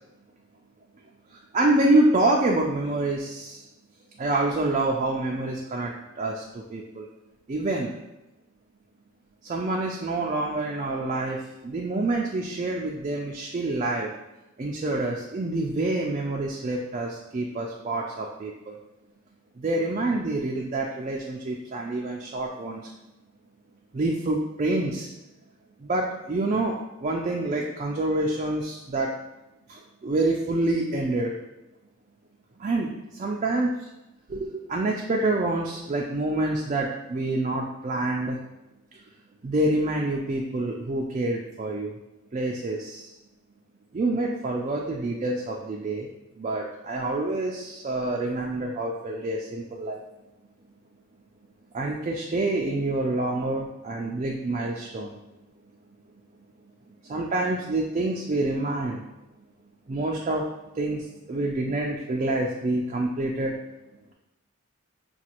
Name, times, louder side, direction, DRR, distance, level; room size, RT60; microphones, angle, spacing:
voice 1, 1.3-3.7 4.2-7.1 7.5-8.0 9.4-11.4 11.6-14.1 14.6-18.8 19.6-22.9 23.9-25.1 25.8-29.1 29.7-31.4 32.6-33.9 34.3-38.4 39.4-41.9 42.3-43.1 43.9-46.1 46.4-50.0 51.7-55.1 57.0-59.0 59.9-60.5 60.7-63.6, right 2 dB, 35° right, -1 dB, 0.3 m, -27 dB
6.0 x 2.3 x 2.9 m, 0.95 s
head